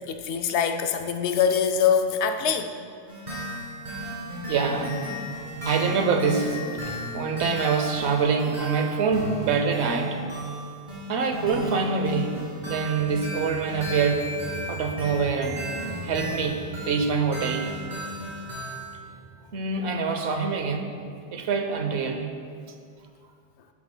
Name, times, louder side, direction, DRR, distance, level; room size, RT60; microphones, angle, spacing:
voice 1, 0.0-2.8 6.9-7.0, left 7 dB, 90° left, 7 dB, 0.9 m, -24 dB
sound 1, 3.1-19.0, right 1 dB, 45° right, 2.1 m, -35 dB
voice 2, 4.5-5.1 5.7-6.6 6.9-10.2 11.1-12.4 12.7-14.3 14.7-15.6 16.0-17.7 19.5-20.9 21.3-22.4, right 5 dB, 85° right, 5 dB, 1.0 m, -25 dB
sound 2, 12.1-21.8, right 1 dB, 10° left, 0.9 m, -44 dB
11.0 x 7.2 x 2.2 m, 2.3 s
omnidirectional pair, 1.1 m